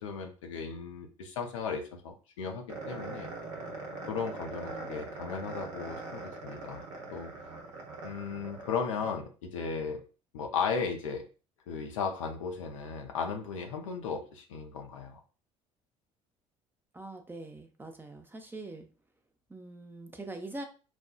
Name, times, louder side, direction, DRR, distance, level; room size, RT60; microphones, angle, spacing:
voice 1, 0.0-3.3 4.1-6.8 7.1-7.3 8.0-10.0 10.3-11.3 11.7-15.2, left 5 dB, 75° left, 3 dB, 0.6 m, -36 dB
sound 1, 2.7-9.1, right 3 dB, 65° right, 0.8 m, -42 dB
voice 2, 16.9-18.9 19.5-20.6, right 2 dB, 10° right, 5 dB, 0.6 m, -43 dB
4.2 x 2.3 x 2.2 m, 0.35 s
figure-of-eight pair, 55°, 17 cm